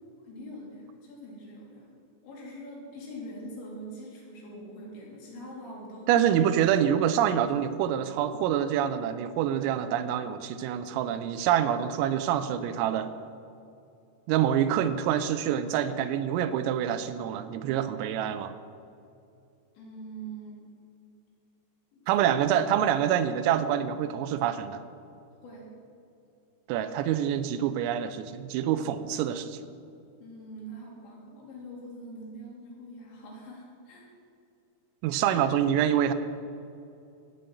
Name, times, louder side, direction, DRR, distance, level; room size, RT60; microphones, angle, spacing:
voice 1, 0.2-1.8 2.2-6.1 19.7-20.6 22.1-22.3 25.4-25.7 30.2-34.1, right 1 dB, 65° left, -4 dB, 5.0 m, -43 dB
voice 2, 6.1-13.1 14.3-18.6 22.1-24.8 26.7-29.6 35.0-36.1, right 10 dB, 85° right, 11 dB, 3.3 m, -26 dB
16.5 x 5.7 x 7.8 m, 2.6 s
omnidirectional pair, 5.9 m